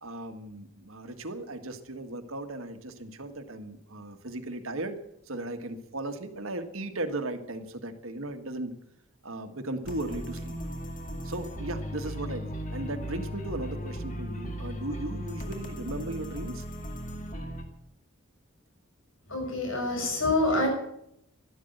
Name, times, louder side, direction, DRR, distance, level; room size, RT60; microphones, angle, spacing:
voice 1, 0.0-5.0 5.3-8.8 9.2-10.5 11.2-16.6, right 2 dB, 75° right, 8 dB, 1.7 m, -36 dB
sound 1, 9.8-17.6, equal, 35° left, 2.2 m, -37 dB
voice 2, 19.3-20.7, left 2 dB, 75° left, 1 dB, 7.4 m, -26 dB
13.0 x 13.0 x 8.0 m, 0.77 s
head